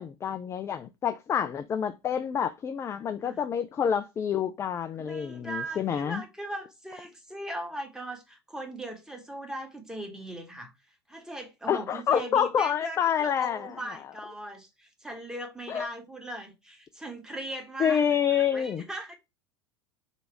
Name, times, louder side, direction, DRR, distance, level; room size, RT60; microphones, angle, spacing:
voice 1, 0.0-6.2 11.7-13.7 15.7-15.9 17.8-18.8, left 8 dB, 20° left, 0.3 m, -28 dB
voice 2, 5.0-10.7 11.1-18.0 18.3-19.1, right 1 dB, 5° right, 1.2 m, -39 dB
3.2 x 2.9 x 4.6 m
figure-of-eight pair, 80°, 14 cm